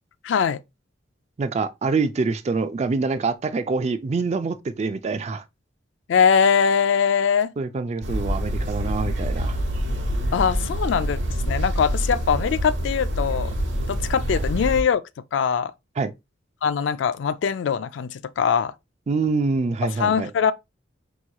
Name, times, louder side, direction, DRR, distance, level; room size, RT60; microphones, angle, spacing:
voice 1, 0.2-0.6 6.1-7.5 10.3-11.2 11.5-13.5 13.9-15.0 15.3-15.7 16.6-18.7 20.0-20.5, left 7 dB, 65° left, 0.3 m, -21 dB
voice 2, 1.4-5.4 7.6-9.6 16.0-16.1 19.1-20.3, right 4 dB, 35° right, 0.3 m, -25 dB
sound 1, 8.0-14.8, equal, 70° right, 0.9 m, -26 dB
5.5 x 3.0 x 2.2 m
head